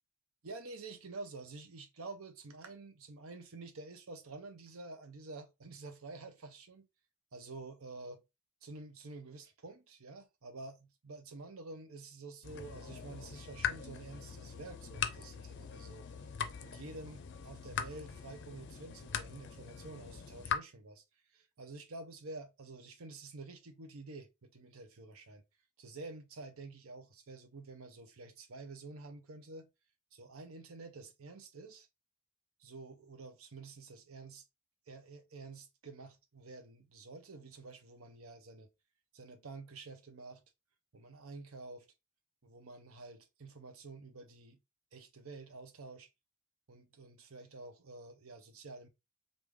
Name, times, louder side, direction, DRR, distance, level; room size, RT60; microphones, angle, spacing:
voice 1, 0.4-6.9 7.3-8.2 8.6-16.1 16.6-21.0 21.3-25.4 25.8-29.7 30.1-31.9 32.6-34.4 34.9-38.7 39.1-40.4 40.9-41.9 42.4-44.6 44.9-46.1 46.7-48.9, right 3 dB, 80° right, 0.8 m, -49 dB
sound 1, 12.4-20.6, left 7 dB, 55° left, 0.5 m, -41 dB
3.6 x 2.6 x 3.1 m
head